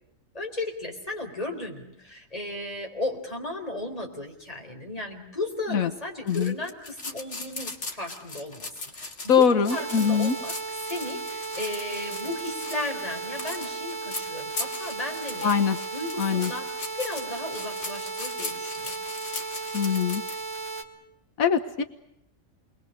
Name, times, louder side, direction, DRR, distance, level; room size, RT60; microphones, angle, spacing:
voice 1, 0.3-10.5 10.9-15.5 15.9-16.7 16.9-19.0, left 2 dB, 25° left, 1 dB, 4.5 m, -35 dB
sound 1, 6.3-20.4, left 3 dB, 55° left, 2.5 m, -38 dB
voice 2, 9.3-10.4 15.4-15.8 16.2-16.5 19.7-20.2 21.4-21.8, left 6 dB, 90° left, 8 dB, 1.6 m, -22 dB
sound 2, 9.7-20.8, right 4 dB, 30° right, 2.1 m, -35 dB
28.5 x 22.0 x 6.7 m, 0.79 s
omnidirectional pair, 1.4 m